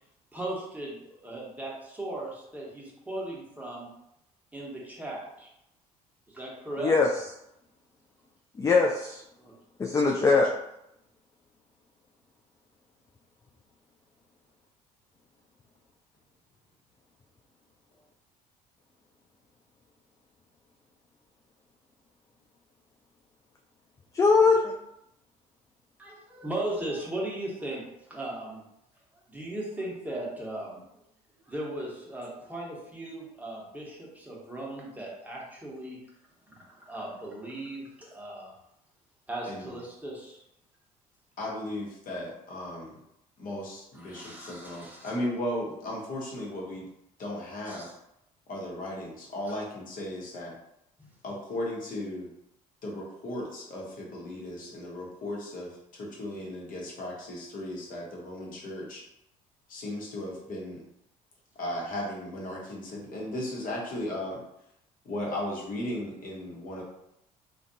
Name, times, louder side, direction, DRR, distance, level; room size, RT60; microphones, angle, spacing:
voice 1, 0.3-3.9 4.5-5.5 6.3-6.9 9.4-9.5 26.0-28.6 29.3-30.8 31.5-36.0 36.5-38.6 39.3-40.4 43.9-45.2 47.7-47.9 49.5-49.6 51.0-51.1, right 1 dB, 10° right, -4 dB, 1.0 m, -37 dB
voice 2, 8.6-9.2 9.8-10.5 24.1-24.7, left 4 dB, 15° left, 0 dB, 0.3 m, -21 dB
voice 3, 41.4-43.0 43.4-46.9 47.2-47.9 48.5-50.5 51.2-52.3 52.8-59.0 59.7-60.8 61.6-64.4 65.0-66.8, left 1 dB, 45° left, -3 dB, 1.0 m, -36 dB
2.5 x 2.3 x 2.7 m, 0.80 s
hypercardioid pair, 55°, 19 cm